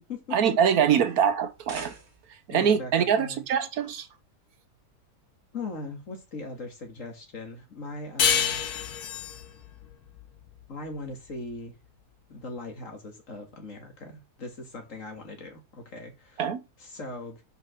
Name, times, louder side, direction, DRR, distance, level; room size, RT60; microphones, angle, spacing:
voice 1, 0.3-1.9 2.5-4.1 16.4-16.6, right 8 dB, 70° right, 1.2 m, -23 dB
sound 1, 1.4-2.5, right 3 dB, 45° right, 1.7 m, -43 dB
voice 2, 2.5-3.4 5.5-8.6 10.7-11.7 12.3-16.4 16.8-17.4, left 3 dB, 50° left, 2.2 m, -39 dB
sound 2, 8.2-11.4, left 8 dB, 70° left, 1.4 m, -28 dB
5.3 x 5.1 x 6.4 m
omnidirectional pair, 1.7 m